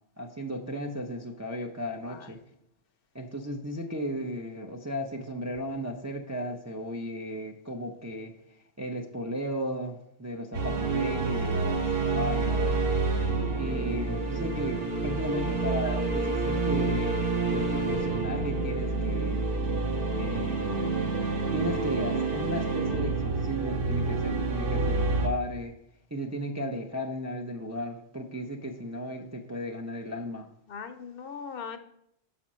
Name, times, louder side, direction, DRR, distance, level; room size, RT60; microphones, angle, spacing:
voice 1, 0.2-2.4 3.1-8.3 8.8-12.8 13.5-19.4 20.2-20.9 21.5-25.7 26.1-30.5, equal, 25° right, 1 dB, 0.4 m, -35 dB
sound 1, 10.5-25.3, right 3 dB, 60° right, 1.3 m, -28 dB
voice 2, 30.7-31.8, left 6 dB, 65° left, 8 dB, 0.8 m, -40 dB
6.2 x 4.3 x 6.1 m, 0.76 s
omnidirectional pair, 1.1 m